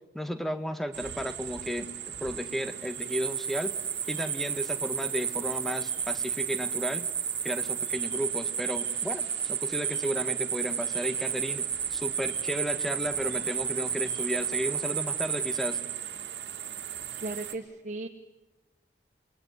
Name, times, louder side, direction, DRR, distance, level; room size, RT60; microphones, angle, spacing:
voice 1, 0.1-3.7 4.1-7.1 7.4-15.8, equal, ahead, 8 dB, 1.8 m, -34 dB
sound 1, 0.9-17.6, right 10 dB, 80° right, 2.2 m, -38 dB
sound 2, 3.0-15.8, right 7 dB, 20° right, 1.9 m, -32 dB
voice 2, 16.9-18.1, right 2 dB, 40° right, 6 dB, 1.3 m, -37 dB
28.5 x 22.0 x 9.5 m, 1.1 s
head